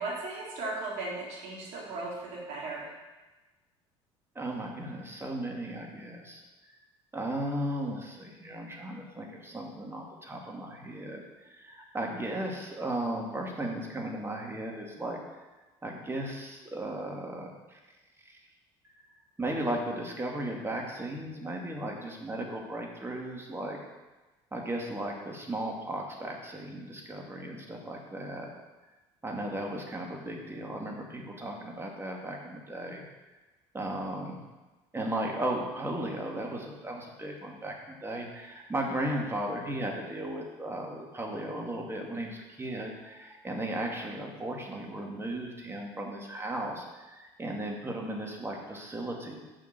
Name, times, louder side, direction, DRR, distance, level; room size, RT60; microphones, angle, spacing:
voice 1, 0.0-2.9, right 2 dB, 65° right, -5 dB, 3.3 m, -36 dB
voice 2, 4.4-6.4 7.1-11.2 11.5-15.2 15.8-17.5 19.4-23.8 24.5-28.5 29.2-33.0 33.7-34.4 34.9-49.4, right 1 dB, 20° right, 0 dB, 2.4 m, -36 dB
6.9 x 6.4 x 7.7 m, 1.2 s
supercardioid pair, 75°, 14 cm